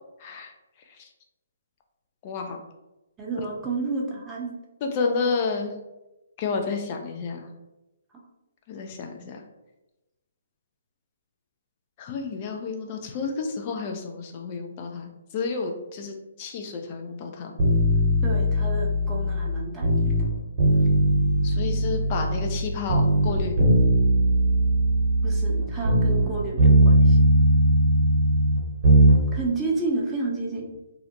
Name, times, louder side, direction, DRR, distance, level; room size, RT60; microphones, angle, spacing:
voice 1, 0.2-0.5 1.0-1.1 2.2-2.6 3.4-3.5 4.8-5.7 6.4-7.5 8.7-9.4 12.0-17.5 21.4-23.5, left 4 dB, 35° left, 3 dB, 0.4 m, -30 dB
voice 2, 3.2-4.5 18.2-20.2 25.2-27.2 29.3-30.7, right 3 dB, 10° right, -3 dB, 0.6 m, -30 dB
sound 1, 17.6-20.3 20.6-22.6 22.9-26.3 26.6-29.2 29.5-29.6, right 1 dB, 45° right, 0.9 m, -20 dB
2.5 x 2.1 x 2.7 m, 1.0 s
figure-of-eight pair, 140°, 0 cm